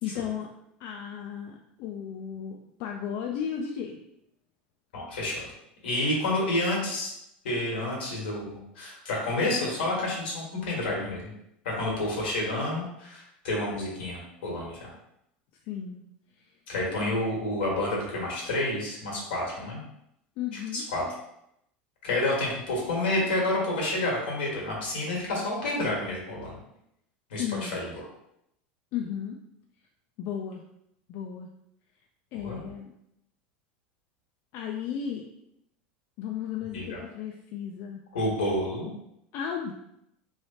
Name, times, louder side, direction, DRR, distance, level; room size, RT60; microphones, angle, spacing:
voice 1, 0.0-0.5 0.8-4.0 15.7-16.0 16.4-16.5 17.0-17.2 20.4-20.8 27.3-27.8 28.9-29.4 30.2-30.6 31.1-31.5 32.3-32.9 34.5-35.3 36.2-38.0 39.3-39.7, left 8 dB, 55° left, 1 dB, 0.4 m, -34 dB
voice 2, 4.9-5.5 5.8-7.1 7.4-11.3 11.6-14.9 16.7-19.8 20.7-21.0 22.0-26.6 27.3-27.9 32.4-32.6 36.7-37.0 38.1-38.9, left 1 dB, 90° left, -3 dB, 1.4 m, -29 dB
3.2 x 3.1 x 2.8 m, 0.78 s
hypercardioid pair, 100°, 5 cm